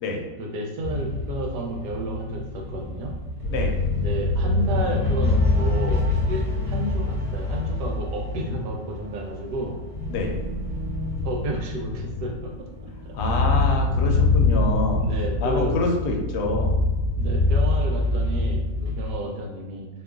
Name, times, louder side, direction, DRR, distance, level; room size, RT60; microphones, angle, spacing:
voice 1, 0.4-3.1 3.9-9.8 11.2-12.7 13.0-13.2 13.6-13.7 15.0-15.7 17.2-19.9, right 1 dB, 75° right, 1 dB, 1.1 m, -31 dB
sound 1, 0.8-19.1, left 3 dB, 40° right, 1.1 m, -25 dB
voice 2, 13.1-15.0 15.4-16.7, left 2 dB, 75° left, 1 dB, 1.1 m, -26 dB
2.8 x 2.3 x 3.5 m, 1.2 s
omnidirectional pair, 1.8 m